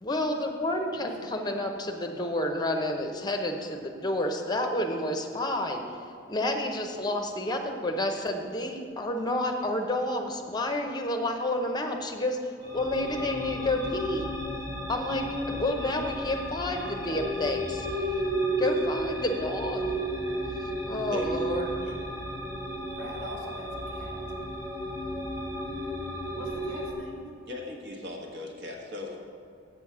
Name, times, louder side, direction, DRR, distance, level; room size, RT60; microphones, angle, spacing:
voice 1, 0.0-5.8 6.3-14.2 14.9-18.1 18.6-19.9 20.9-21.7, left 1 dB, 20° left, 4 dB, 0.7 m, -30 dB
voice 2, 0.9-1.3 22.9-24.2 26.3-27.3, equal, 85° right, -4 dB, 2.5 m, -43 dB
sound 1, 12.6-26.9, right 1 dB, 15° right, 1.4 m, -33 dB
voice 3, 21.5-21.9 27.5-29.2, left 2 dB, 60° right, 0 dB, 1.4 m, -39 dB
7.9 x 7.9 x 6.0 m, 2.3 s
head